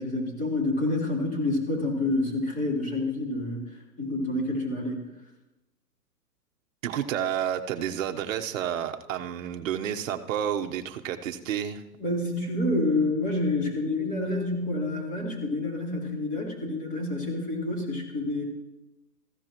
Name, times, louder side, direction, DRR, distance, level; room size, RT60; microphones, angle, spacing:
voice 1, 0.0-3.6 4.0-5.0 12.0-18.4, left 2 dB, 15° left, -3 dB, 3.9 m, -28 dB
voice 2, 6.8-11.8, right 9 dB, 50° right, 6 dB, 1.1 m, -30 dB
19.5 x 15.0 x 3.0 m, 0.98 s
hypercardioid pair, 135°, 49 cm